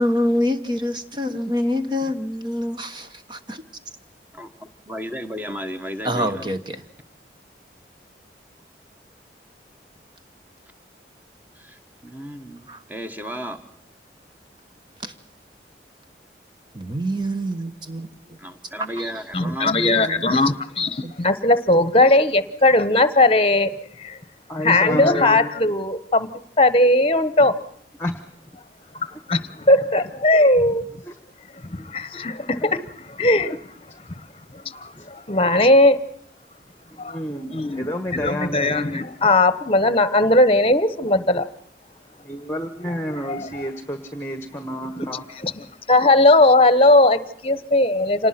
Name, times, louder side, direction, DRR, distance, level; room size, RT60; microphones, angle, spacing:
voice 1, 0.0-3.6 6.0-6.8 12.7-12.8 15.0-15.1 16.7-18.4 19.0-19.1 19.4-19.5 20.0-20.2 21.0-21.1, equal, 25° right, 7 dB, 1.3 m, -26 dB
voice 2, 4.3-6.6 11.5-13.6 18.4-19.8, equal, 10° right, 8 dB, 1.6 m, -34 dB
voice 3, 19.3-23.7 24.0-24.2 24.6-26.3 26.6-27.5 28.9-30.9 31.6-33.6 34.5-36.0 37.0-37.2 37.5-41.5 42.8-43.7 45.0-48.3, left 2 dB, 30° left, 15 dB, 1.1 m, -18 dB
voice 4, 24.5-25.4 28.0-28.1 29.1-29.2 31.1-31.2 32.6-32.7 35.0-35.1 36.9-39.0 42.2-45.2, equal, 15° left, 9 dB, 1.3 m, -29 dB
27.0 x 19.5 x 5.9 m, 0.72 s
head